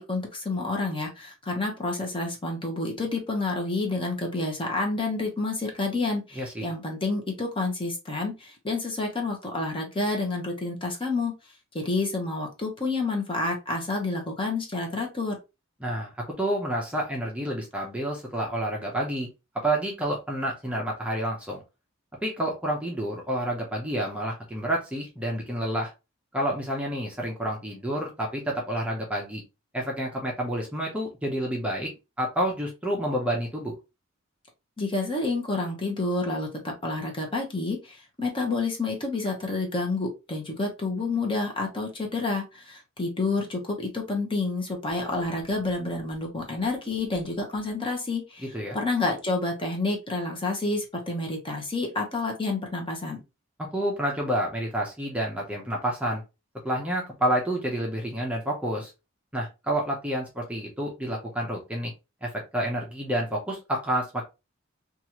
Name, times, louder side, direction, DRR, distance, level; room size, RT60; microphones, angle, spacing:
voice 1, 0.0-11.3 11.7-15.4 34.8-48.5 48.7-53.2, left 3 dB, 25° left, 1 dB, 0.8 m, -29 dB
voice 2, 6.4-6.7 15.8-16.1 16.4-19.3 19.6-21.6 22.2-25.9 26.3-29.4 29.7-31.9 32.2-33.7 48.5-48.8 53.6-56.2 56.6-58.9 59.3-61.9 62.2-64.3, right 1 dB, 5° right, -2 dB, 0.6 m, -29 dB
2.9 x 2.4 x 2.9 m, 0.26 s
head